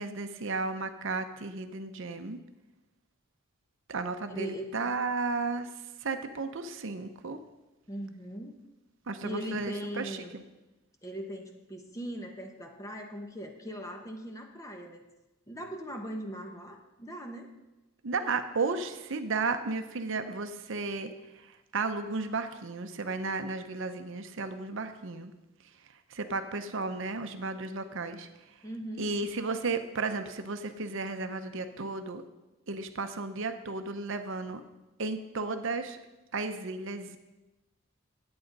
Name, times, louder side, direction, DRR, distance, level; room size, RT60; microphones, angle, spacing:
voice 1, 0.0-2.4 3.9-5.7 6.0-7.4 9.1-10.4 18.0-25.3 26.1-28.3 29.0-32.2 32.7-34.6 35.0-36.0 36.3-37.2, right 3 dB, 60° right, 8 dB, 0.7 m, -34 dB
voice 2, 4.3-4.7 7.9-8.5 9.2-10.4 11.0-15.0 15.5-17.5 28.6-29.2, equal, 15° left, 3 dB, 1.0 m, -40 dB
10.5 x 8.7 x 5.3 m, 1.1 s
head